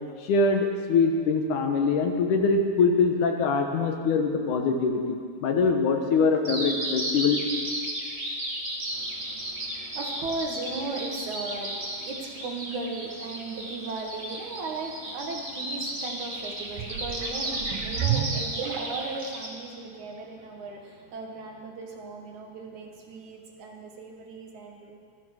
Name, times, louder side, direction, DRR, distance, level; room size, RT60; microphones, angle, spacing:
voice 1, 0.2-7.4, left 4 dB, 70° left, 4 dB, 2.7 m, -23 dB
Bird vocalization bird call bird song, 6.4-19.5, right 1 dB, 15° right, 2.3 m, -34 dB
voice 2, 8.9-25.0, right 3 dB, 65° right, 1 dB, 2.9 m, -37 dB
sound 1, 16.7-19.3 20.0-20.1, right 9 dB, 85° right, 2.6 m, -32 dB
17.0 x 13.0 x 6.6 m, 2.1 s
omnidirectional pair, 3.8 m